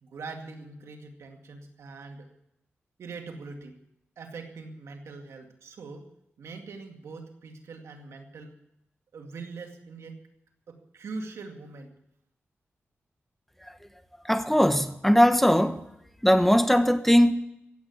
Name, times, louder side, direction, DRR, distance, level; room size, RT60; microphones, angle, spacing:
voice 1, 0.0-2.3 3.0-3.8 4.2-6.1 6.4-8.5 9.1-10.2 10.7-11.9, right 4 dB, 90° right, 2.1 m, -42 dB
voice 2, 14.2-15.8 16.2-17.3, equal, 5° left, 1.2 m, -20 dB
15.5 x 8.7 x 9.6 m
cardioid pair, 60°, 5 cm